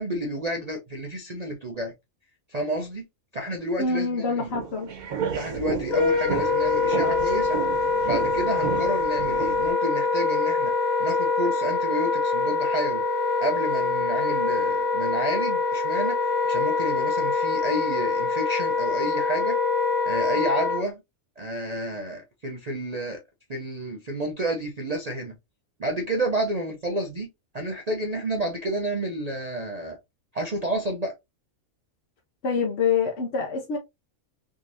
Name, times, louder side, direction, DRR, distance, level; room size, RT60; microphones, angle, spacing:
voice 1, 0.0-1.9 2.5-3.0 3.3-4.5 5.3-7.6 8.0-13.0 13.4-19.6 20.1-21.0 21.4-23.2 23.5-25.4 25.8-27.3 27.5-30.0 30.3-31.1, right 1 dB, 45° right, 0.5 m, -30 dB
voice 2, 3.8-4.9 32.4-33.8, left 5 dB, 55° left, 0.9 m, -25 dB
sound 1, 4.5-9.7, right 7 dB, 85° right, 1.5 m, -32 dB
Wind instrument woodwind instrument, 5.8-20.8, left 4 dB, 75° left, 2.0 m, -24 dB
3.6 x 2.9 x 2.6 m
omnidirectional pair, 1.5 m